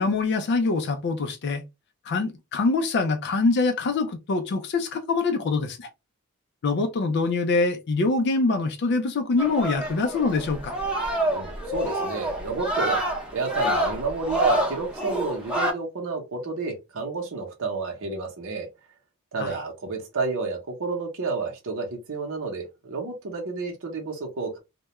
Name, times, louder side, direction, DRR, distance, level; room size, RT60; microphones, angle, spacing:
voice 1, 0.0-1.6 2.1-5.9 6.6-10.7 19.4-19.5, left 3 dB, 50° left, 0.4 m, -24 dB
sound 1, 9.4-15.7, right 1 dB, 5° right, 0.7 m, -27 dB
voice 2, 11.3-13.0 13.3-18.7 19.3-24.6, right 4 dB, 60° right, 0.7 m, -30 dB
2.2 x 2.1 x 2.9 m
head